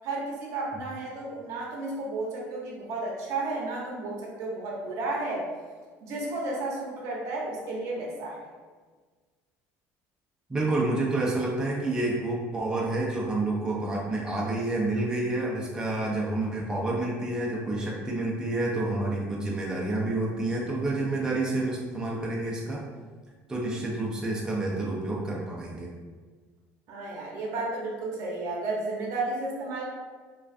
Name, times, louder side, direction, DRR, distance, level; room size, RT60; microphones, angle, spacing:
voice 1, 0.0-5.5 6.0-8.4 26.9-29.9, right 2 dB, 65° right, -3 dB, 0.6 m, -32 dB
voice 2, 10.5-22.8 23.5-25.9, right 2 dB, 10° right, -4 dB, 0.4 m, -29 dB
2.3 x 2.3 x 2.4 m, 1.5 s
supercardioid pair, 105°, 6 cm